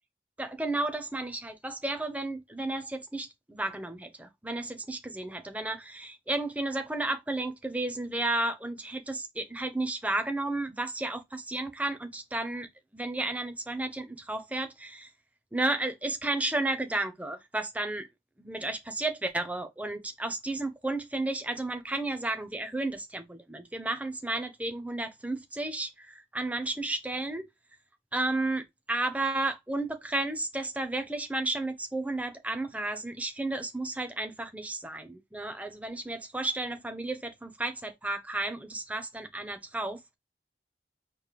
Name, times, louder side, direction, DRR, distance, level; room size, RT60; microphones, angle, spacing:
voice 1, 0.4-12.7 12.9-15.1 15.5-18.1 18.4-27.4 28.1-40.2, right 2 dB, 10° right, 0.7 m, -33 dB
4.2 x 3.2 x 3.1 m
head